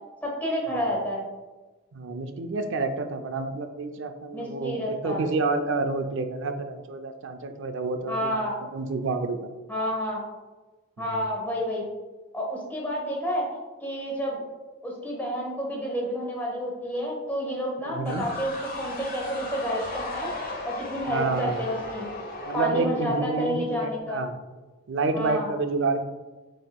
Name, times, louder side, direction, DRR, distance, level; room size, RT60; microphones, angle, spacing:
voice 1, 0.2-1.2 4.3-5.2 8.1-8.5 9.7-10.2 11.0-11.8 12.3-13.5 13.8-14.4 14.8-20.3 20.6-22.1 22.5-24.2 25.1-25.5, equal, 10° left, -3 dB, 1.0 m, -29 dB
voice 2, 1.9-8.4 8.7-9.5 11.0-11.2 17.8-18.2 21.1-21.6 22.5-24.3 24.9-26.0, right 3 dB, 65° right, 7 dB, 0.4 m, -29 dB
sound 1, 18.0-23.8, left 2 dB, 45° left, 0.9 m, -36 dB
7.5 x 2.8 x 2.3 m, 1.2 s
head